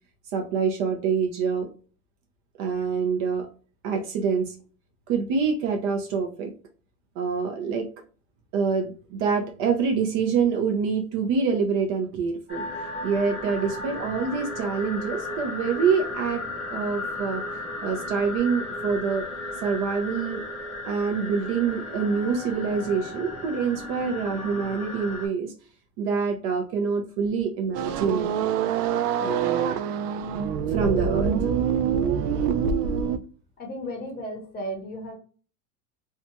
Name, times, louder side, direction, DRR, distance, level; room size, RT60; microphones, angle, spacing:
voice 1, 0.3-1.7 2.6-3.5 3.8-4.5 5.1-6.5 7.2-7.9 8.5-12.6 13.0-16.4 16.7-17.4 17.8-19.3 19.6-20.4 20.8-25.5 26.0-28.3 29.2-29.8 30.7-31.3, right 5 dB, 45° right, 4 dB, 0.6 m, -26 dB
sound 1, 12.5-25.3, left 2 dB, ahead, 1.1 m, -35 dB
sound 2, 27.7-33.2, right 7 dB, 85° right, 0.5 m, -25 dB
voice 2, 33.6-35.1, equal, 20° left, 0 dB, 0.7 m, -34 dB
2.7 x 2.2 x 2.6 m, 0.38 s
supercardioid pair, 150°, 46 cm